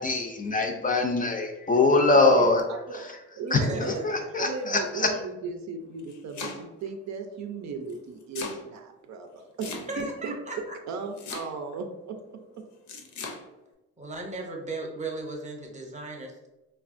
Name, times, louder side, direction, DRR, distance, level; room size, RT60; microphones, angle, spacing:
voice 1, 0.0-2.6 2.9-3.0 3.5-3.6 4.0-5.1, left 3 dB, 30° left, 3 dB, 0.4 m, -23 dB
voice 2, 2.2-3.1 3.4-4.0 4.4-10.6 10.9-12.4, right 4 dB, 65° right, 5 dB, 0.5 m, -36 dB
voice 3, 3.6-4.2 9.9-10.8 14.0-16.5, right 2 dB, 25° right, 1 dB, 0.7 m, -36 dB
Domestic sounds home sounds, 5.8-6.9 7.9-8.6 9.6-10.2 11.2-11.8 12.9-13.4, left 4 dB, 70° left, 0.6 m, -38 dB
3.3 x 2.3 x 2.5 m, 1.0 s
cardioid pair, 90°, 30 cm